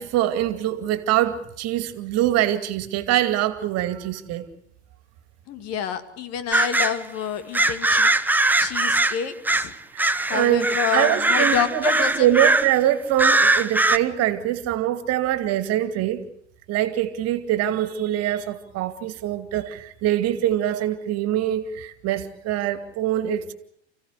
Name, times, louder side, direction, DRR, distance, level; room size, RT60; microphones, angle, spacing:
voice 1, 0.0-4.5 9.9-16.2 16.7-23.5, right 12 dB, 45° right, 11 dB, 2.4 m, -24 dB
voice 2, 5.5-8.1 8.6-9.7 10.3-12.4, left 8 dB, 45° left, 10 dB, 2.4 m, -28 dB
sound 1, 6.5-7.0 7.5-9.7 10.0-12.8 13.2-14.0, right 2 dB, 5° right, 1.1 m, -21 dB
30.0 x 16.0 x 8.1 m, 0.70 s
figure-of-eight pair, 80°, 34 cm